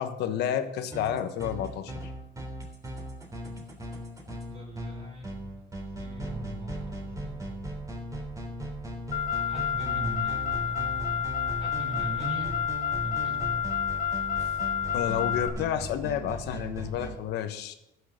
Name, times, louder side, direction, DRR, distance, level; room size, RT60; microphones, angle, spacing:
voice 1, 0.0-2.1 14.4-14.5 14.9-17.7, left 9 dB, 80° left, 9 dB, 1.2 m, -30 dB
sound 1, 0.8-17.2, right 1 dB, 20° right, 3.5 m, -38 dB
voice 2, 4.4-5.5 6.0-7.6 9.5-12.7 13.0-13.6, right 1 dB, 40° right, -4 dB, 4.2 m, -40 dB
Car, 9.1-15.5, left 9 dB, 50° left, 2.0 m, -30 dB
13.5 x 6.6 x 6.4 m, 0.88 s
cardioid pair, 110°, 17 cm